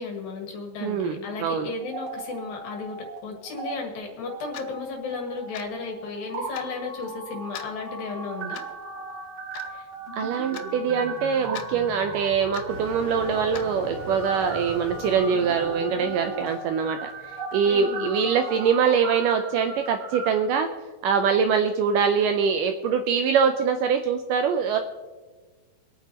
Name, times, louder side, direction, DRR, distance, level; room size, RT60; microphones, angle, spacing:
voice 1, 0.0-8.6 17.7-18.1, left 4 dB, 75° left, 2 dB, 3.4 m, -34 dB
voice 2, 0.8-1.7 10.2-17.1 17.5-20.7 21.0-24.8, right 6 dB, 80° right, 7 dB, 2.0 m, -23 dB
sound 1, 1.8-3.2 3.4-3.7 4.3-20.3, right 3 dB, 50° right, 2.6 m, -37 dB
Clock, 4.5-4.7 5.5-5.8 6.5-6.7 7.5-7.7 8.5-8.8 9.5-9.7 10.5-10.7 11.5-11.7 12.5-12.7 13.5-13.7, left 10 dB, 90° left, 2.6 m, -39 dB
Motor vehicle (road), 12.7-17.6, left 2 dB, 40° left, 1.9 m, -43 dB
25.5 x 9.1 x 2.9 m, 1.4 s
omnidirectional pair, 4.3 m